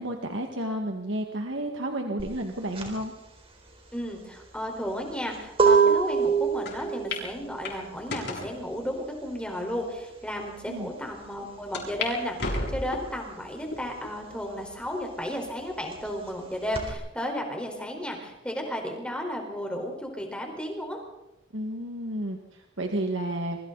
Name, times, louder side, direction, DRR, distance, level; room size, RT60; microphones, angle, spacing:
voice 1, 0.0-3.1 10.7-10.9 21.5-23.6, right 1 dB, 75° right, 3 dB, 1.9 m, -31 dB
sound 1, 2.2-12.4 12.7-16.9, right 5 dB, 30° right, 4.1 m, -27 dB
voice 2, 3.9-21.0, equal, 5° left, 2 dB, 4.6 m, -33 dB
sound 2, 6.7-6.8 7.1-7.3 7.6-8.5 9.2-9.3 10.0-10.1 10.4-10.5 11.7-12.1 12.4-13.2 13.7-14.2 14.7-14.8 15.9-16.4, left 2 dB, 60° left, 7.0 m, -33 dB
27.0 x 24.0 x 4.1 m, 0.90 s
head